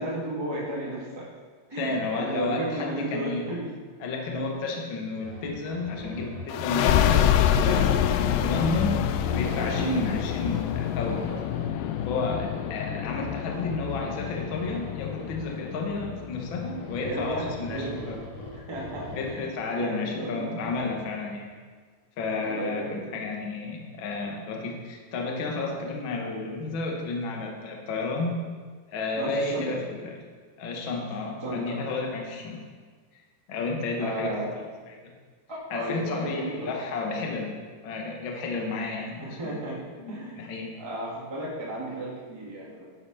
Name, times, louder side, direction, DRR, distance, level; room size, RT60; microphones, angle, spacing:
voice 1, 0.0-1.3 1.7-3.7 9.7-10.0 17.0-18.0 18.7-19.4 19.7-20.7 22.4-23.2 29.2-29.8 31.4-31.8 34.0-34.5 35.5-36.7 39.2-40.4 40.8-42.8, right 2 dB, 10° right, -4 dB, 1.4 m, -34 dB
voice 2, 1.7-3.4 4.0-8.1 8.4-11.4 12.0-18.2 19.1-21.5 22.2-28.4 28.9-30.2 30.6-32.6 33.1-33.2 33.5-34.4 34.9-35.1 35.7-37.6 37.8-39.6 40.0-40.7, left 3 dB, 65° left, 0 dB, 1.2 m, -32 dB
sound 1, 5.2-7.9 9.2-15.4 16.4-19.4 20.6-21.0, left 1 dB, 40° left, 5.0 m, -42 dB
sound 2, 6.5-17.8, left 10 dB, 85° left, 2.0 m, -27 dB
10.5 x 8.0 x 5.7 m, 1.5 s
omnidirectional pair, 4.5 m